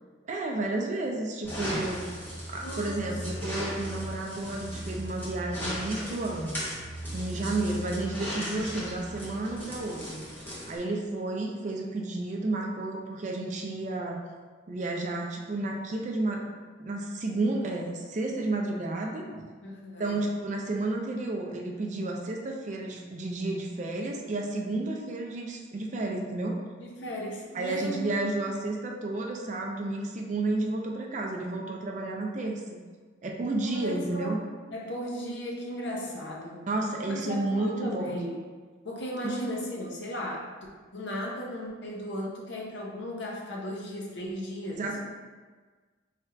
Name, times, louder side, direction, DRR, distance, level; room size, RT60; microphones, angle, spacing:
voice 1, 0.3-2.1 2.5-6.6 7.1-10.2 10.7-14.2 14.7-16.5 16.8-19.5 20.0-26.6 27.5-32.8 33.2-34.4 36.7-38.2 39.2-39.4 44.7-45.0, right 2 dB, 35° right, 1 dB, 0.4 m, -31 dB
sound 1, 1.4-10.8, equal, 10° left, 0.8 m, -36 dB
voice 2, 2.6-3.0 7.3-7.5 19.6-20.2 26.8-28.1 33.6-34.4 34.7-36.7 37.1-38.4 38.8-40.4 40.9-44.9, equal, 60° left, -2 dB, 0.7 m, -36 dB
3.3 x 2.4 x 4.3 m, 1.4 s
head